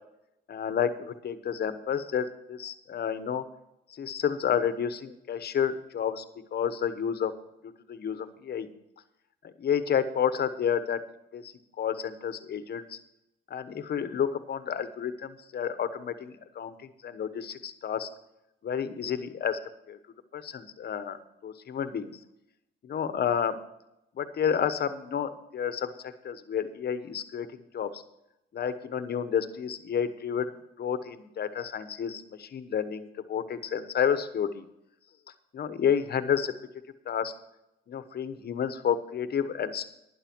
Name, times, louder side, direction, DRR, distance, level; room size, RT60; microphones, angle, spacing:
voice 1, 0.5-3.4 3.9-6.2 6.5-7.3 7.9-8.7 9.4-11.0 11.3-13.0 13.5-16.7 17.0-18.1 18.6-19.6 19.9-20.0 20.3-21.2 21.4-22.1 22.8-23.6 24.2-28.0 28.5-34.6 35.5-36.5 37.1-37.3 37.9-39.8, left 8 dB, 55° left, 11 dB, 1.2 m, -30 dB
12.0 x 10.0 x 4.6 m, 0.86 s
cardioid pair, 90°, 20 cm